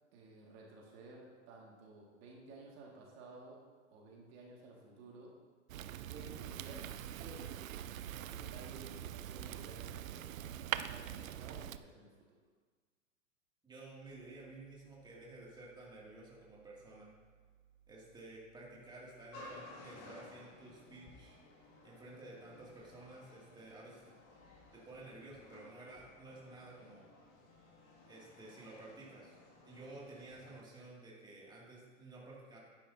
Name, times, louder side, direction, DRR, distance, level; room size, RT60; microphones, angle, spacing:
voice 1, 0.1-3.6 3.9-5.4 6.1-6.9 7.2-7.6 8.1-12.4, right 2 dB, 50° right, -2 dB, 2.0 m, -54 dB
Fire, 5.7-11.8, right 11 dB, 75° right, 0.6 m, -43 dB
voice 2, 13.6-17.1 17.9-21.4 21.8-24.1 24.7-27.0 28.1-29.4 29.7-32.6, right 2 dB, 10° right, -5 dB, 2.3 m, -53 dB
sound 1, 14.0-19.6, right 9 dB, 30° right, 2.1 m, -68 dB
sound 2, 19.3-30.6, left 2 dB, 40° left, 2.2 m, -57 dB
10.5 x 10.0 x 2.7 m, 1.5 s
hypercardioid pair, 115°, 40 cm